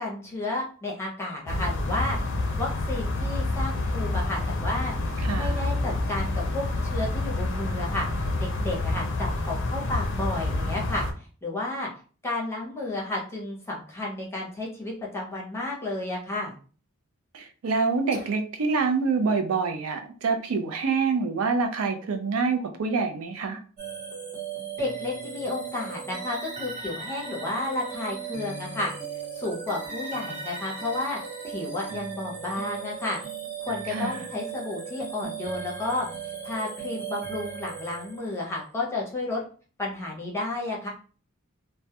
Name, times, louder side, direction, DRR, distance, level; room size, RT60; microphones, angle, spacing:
voice 1, 0.0-11.9 12.2-16.5 18.1-18.2 24.8-28.9 29.3-31.2 31.4-33.2 33.6-36.1 36.4-39.4 39.8-40.9, left 2 dB, 10° left, -3 dB, 0.6 m, -32 dB
sound 1, 1.5-11.1, left 2 dB, 60° left, 0.4 m, -28 dB
voice 2, 5.2-5.6 17.3-23.6 33.9-34.3, right 4 dB, 75° right, 6 dB, 0.4 m, -26 dB
sound 2, 23.8-38.5, right 6 dB, 35° right, 0.9 m, -37 dB
2.2 x 2.1 x 2.7 m, 0.39 s
head